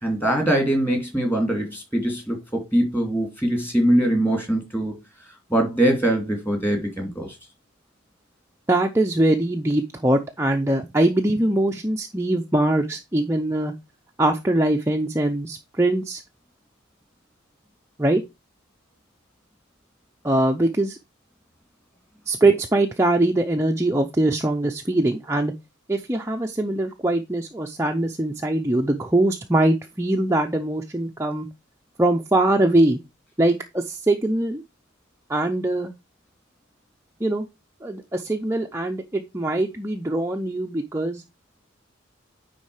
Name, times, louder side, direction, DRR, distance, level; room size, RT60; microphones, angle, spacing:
voice 1, 0.0-4.9 5.5-7.4, right 1 dB, 10° left, 2.7 m, -22 dB
voice 2, 8.7-13.7 14.2-16.2 18.0-18.2 20.2-21.0 22.3-25.5 25.9-31.5 32.0-33.0 33.4-34.6 35.3-35.9 37.2-37.5 37.8-41.2, right 1 dB, 15° right, 0.5 m, -22 dB
9.8 x 3.9 x 4.8 m
head